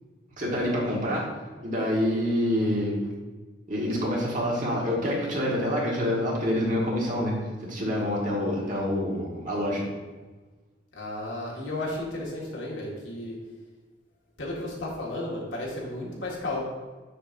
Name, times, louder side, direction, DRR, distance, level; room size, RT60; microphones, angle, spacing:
voice 1, 0.4-1.3 1.6-2.9 3.7-9.9, equal, 40° right, -3 dB, 1.6 m, -27 dB
voice 2, 10.9-13.4 14.4-16.6, left 1 dB, 80° left, -4 dB, 1.9 m, -33 dB
6.8 x 6.6 x 2.7 m, 1.3 s
head